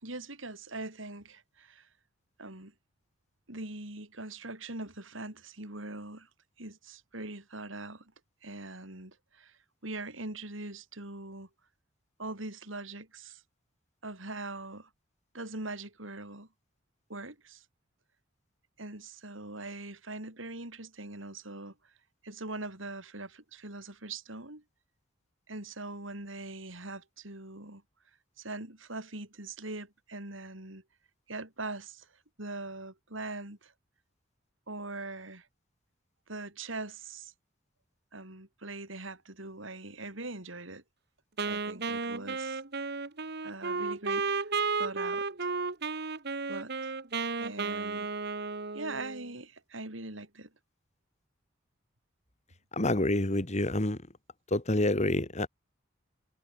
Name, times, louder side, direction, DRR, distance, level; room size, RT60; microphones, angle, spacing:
voice 1, 0.0-1.9 2.4-2.7 3.5-6.3 6.6-8.1 8.4-9.6 9.8-11.5 12.2-13.4 14.0-14.9 15.3-16.5 17.1-17.6 18.8-21.7 22.2-24.6 25.5-27.8 28.4-30.8 31.3-32.1 32.4-33.7 34.7-35.5 36.3-37.3 38.1-40.8 41.4-42.6 43.4-45.5 46.5-46.7 47.4-48.1 48.7-50.5, right 2 dB, 85° right, 5.8 m, -42 dB
Wind instrument woodwind instrument, 41.4-49.3, right 4 dB, 55° right, 1.7 m, -33 dB
voice 2, 52.7-54.0 54.5-55.5, left 1 dB, 35° left, 2.3 m, -27 dB
head